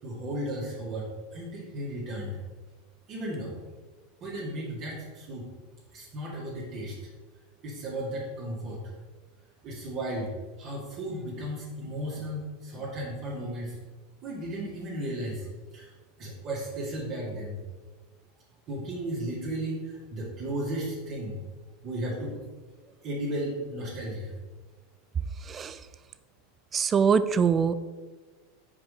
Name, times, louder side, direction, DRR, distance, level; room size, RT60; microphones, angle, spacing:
voice 1, 0.0-2.4 3.1-3.5 4.2-5.5 5.9-7.0 7.6-8.8 9.6-10.3 10.6-13.8 14.2-15.5 15.7-15.9 16.2-17.6 18.7-21.4 21.8-22.4 23.0-24.3, right 1 dB, 45° right, -5 dB, 2.1 m, -34 dB
voice 2, 26.7-27.7, right 6 dB, 30° right, 14 dB, 0.4 m, -23 dB
5.1 x 5.1 x 4.9 m, 1.3 s
hypercardioid pair, 90°, 0 cm